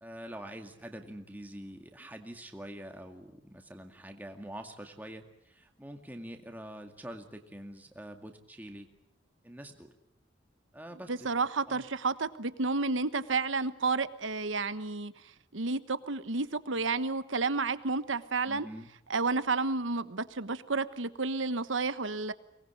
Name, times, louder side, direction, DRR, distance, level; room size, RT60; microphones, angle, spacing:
voice 1, 0.0-8.9 9.4-9.9 10.7-11.3 11.7-11.9 18.5-18.9, right 1 dB, 10° right, 4 dB, 2.1 m, -45 dB
voice 2, 11.1-15.1 15.5-18.7 19.1-22.3, right 3 dB, 85° right, 13 dB, 1.2 m, -31 dB
24.0 x 20.0 x 10.0 m, 0.78 s
head